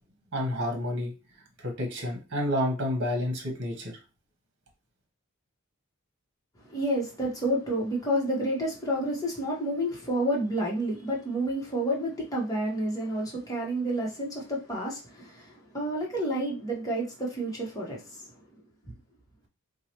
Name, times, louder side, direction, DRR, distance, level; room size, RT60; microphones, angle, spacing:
voice 1, 0.3-1.1 1.6-4.0, left 1 dB, 55° right, 1.2 m, -29 dB
voice 2, 6.6-18.3, right 1 dB, 15° left, 1.2 m, -30 dB
4.7 x 2.3 x 3.0 m
head